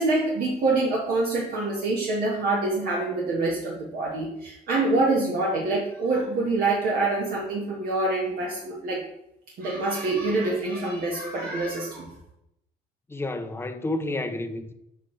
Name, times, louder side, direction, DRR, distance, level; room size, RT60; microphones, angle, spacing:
voice 1, 0.0-9.0 9.6-12.1, right 2 dB, 60° right, 1.5 m, -26 dB
voice 2, 13.1-14.7, left 2 dB, 15° left, 0.7 m, -30 dB
7.4 x 5.8 x 3.3 m
cardioid pair, 110°, 17 cm